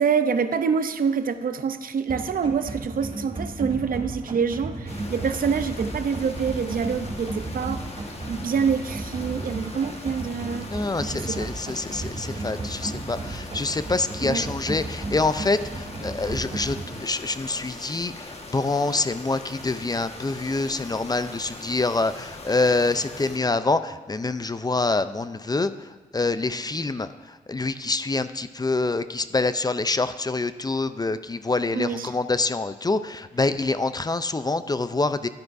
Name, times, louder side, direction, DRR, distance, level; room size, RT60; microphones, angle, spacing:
voice 1, 0.0-7.8 8.3-10.7 11.1-11.5 14.2-14.4 31.7-32.1, right 6 dB, 60° right, 10 dB, 0.6 m, -26 dB
sound 1, 2.1-16.9, right 2 dB, 40° right, 3.0 m, -34 dB
sound 2, 4.9-23.4, left 2 dB, 40° left, 1.5 m, -41 dB
voice 2, 10.7-35.3, left 3 dB, 25° left, 12 dB, 0.5 m, -26 dB
12.0 x 9.3 x 2.6 m, 1.4 s
cardioid pair, 50°, 16 cm